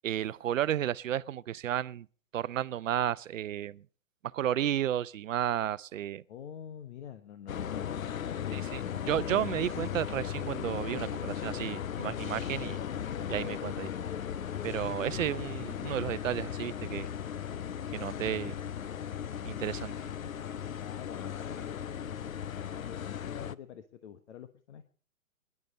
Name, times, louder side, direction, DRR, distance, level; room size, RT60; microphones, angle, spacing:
voice 1, 0.0-2.1 2.3-3.8 4.3-6.2 8.5-12.8 13.3-13.9 14.6-17.1 17.9-18.5 19.4-19.9, right 11 dB, 70° right, 0.7 m, -32 dB
voice 2, 6.3-9.6 15.7-15.9 20.8-24.8, left 9 dB, 60° left, 1.3 m, -48 dB
sound 1, 7.5-23.5, left 9 dB, 85° left, 0.7 m, -37 dB
20.5 x 11.0 x 4.2 m
hypercardioid pair, 125°, 40 cm